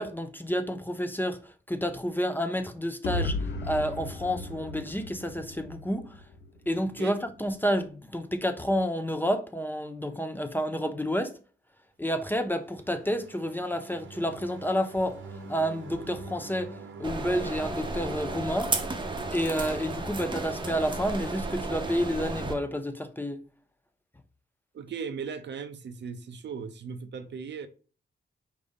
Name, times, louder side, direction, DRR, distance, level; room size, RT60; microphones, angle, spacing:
voice 1, 0.0-6.2 6.7-11.4 12.0-18.8 19.3-23.4, equal, 10° left, 0.5 m, -30 dB
sound 1, 3.0-6.9, left 2 dB, 65° left, 0.8 m, -35 dB
sound 2, 12.3-21.0, right 3 dB, 85° right, 1.0 m, -46 dB
sound 3, 17.0-22.5, right 3 dB, 25° right, 0.7 m, -33 dB
voice 2, 24.7-27.7, right 6 dB, 65° right, 0.6 m, -37 dB
4.9 x 2.6 x 3.4 m
cardioid pair, 100°, 20 cm